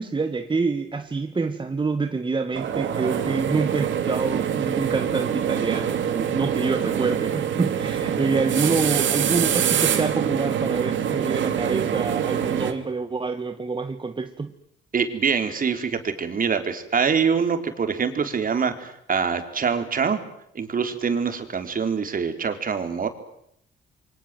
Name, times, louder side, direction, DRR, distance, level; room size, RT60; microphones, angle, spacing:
voice 1, 0.0-14.5, right 4 dB, 25° right, 1.7 m, -27 dB
sound 1, 2.5-12.7, right 9 dB, 70° right, 3.2 m, -25 dB
voice 2, 14.9-20.2 20.5-23.1, right 6 dB, 45° right, 4.1 m, -24 dB
28.5 x 24.5 x 7.8 m
cardioid pair, 90°, 20 cm